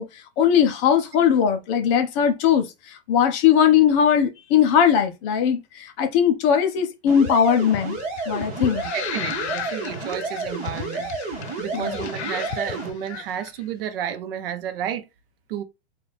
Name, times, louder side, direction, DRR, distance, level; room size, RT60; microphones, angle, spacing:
voice 1, 0.0-8.0 8.3-8.8 11.7-11.9, left 8 dB, 30° left, 0.6 m, -19 dB
sound 1, 7.1-12.9, right 3 dB, 20° right, 1.2 m, -31 dB
sound 2, 7.2-13.5, left 9 dB, 85° left, 0.7 m, -35 dB
voice 2, 8.9-11.1 11.6-15.1 15.5-15.6, right 9 dB, 60° right, 0.8 m, -31 dB
4.0 x 2.5 x 3.3 m
supercardioid pair, 155°, 33 cm